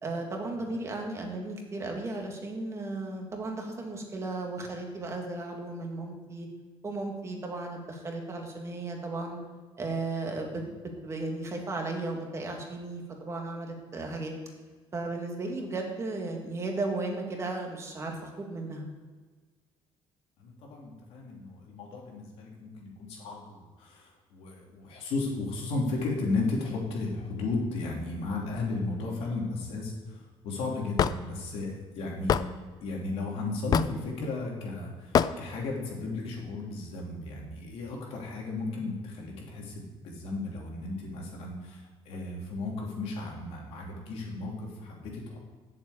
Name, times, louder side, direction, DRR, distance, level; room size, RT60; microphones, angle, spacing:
voice 1, 0.0-6.5 6.8-9.4 9.8-10.6 11.0-14.3 14.9-18.9, right 2 dB, 30° right, 2 dB, 1.9 m, -35 dB
voice 2, 20.4-32.5 32.8-45.4, left 3 dB, 80° left, -1 dB, 3.0 m, -34 dB
Hammer / Wood, 31.0-31.2 32.3-32.5 33.7-34.0 35.1-35.3, left 8 dB, 40° left, 0.4 m, -23 dB
8.0 x 7.4 x 8.4 m, 1.4 s
cardioid pair, 135°, 10 cm